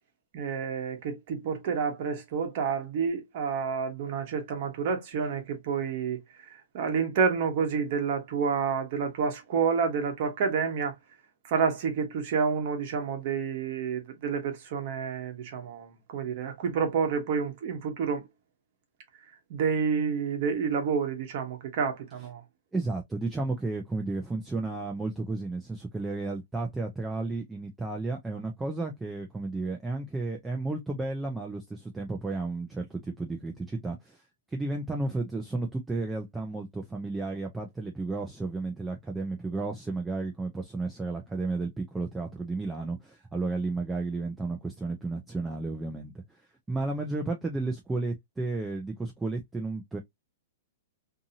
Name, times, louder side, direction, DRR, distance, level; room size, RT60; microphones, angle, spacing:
voice 1, 0.3-6.2 6.7-10.9 11.4-18.2 19.5-22.4, right 6 dB, 40° right, 0.9 m, -29 dB
voice 2, 22.7-34.2 34.5-46.2 46.7-50.0, right 3 dB, 5° right, 0.4 m, -33 dB
2.6 x 2.5 x 2.7 m
hypercardioid pair, 175°, 0 cm